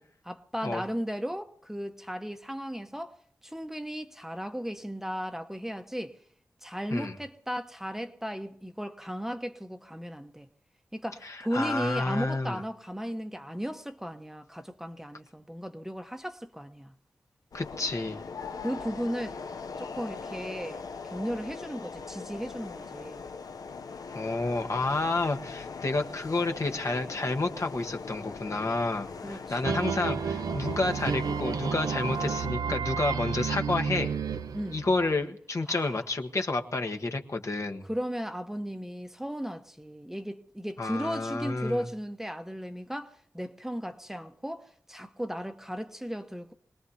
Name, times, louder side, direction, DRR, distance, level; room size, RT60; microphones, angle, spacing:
voice 1, 0.0-3.2 3.4-6.2 6.6-10.5 10.9-16.9 18.6-19.4 19.8-23.2 29.2-30.0 30.6-30.8 34.5-34.8 35.7-36.0 37.8-46.5, equal, 5° right, 1.0 m, -36 dB
voice 2, 11.2-12.6 17.5-18.2 24.1-34.1 34.7-37.9 40.8-41.8, left 2 dB, 55° left, 1.5 m, -30 dB
sound 1, 17.5-32.5, left 5 dB, 85° left, 0.7 m, -41 dB
sound 2, 29.6-35.2, right 6 dB, 90° right, 0.6 m, -31 dB
25.5 x 19.0 x 2.8 m
cardioid pair, 60°, 6 cm